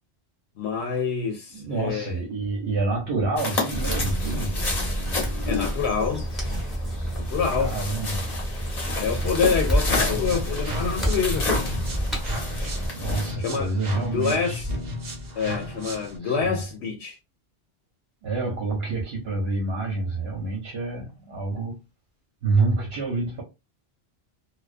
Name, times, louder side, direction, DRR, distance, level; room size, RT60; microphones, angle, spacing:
voice 1, 0.6-2.1 5.5-6.2 7.3-7.8 9.0-11.7 13.4-14.7 15.4-17.2, left 6 dB, 80° left, 0.8 m, -27 dB
voice 2, 1.5-4.6 7.6-8.2 12.8-14.6 16.2-16.6 18.2-21.8 22.4-23.4, right 3 dB, 70° right, 1.0 m, -27 dB
sound 1, 3.4-13.3, left 3 dB, 40° left, 0.9 m, -32 dB
sound 2, 3.7-12.9, equal, ahead, 0.8 m, -29 dB
sound 3, 9.8-16.2, equal, 50° right, 0.7 m, -34 dB
2.3 x 2.2 x 2.4 m
omnidirectional pair, 1.1 m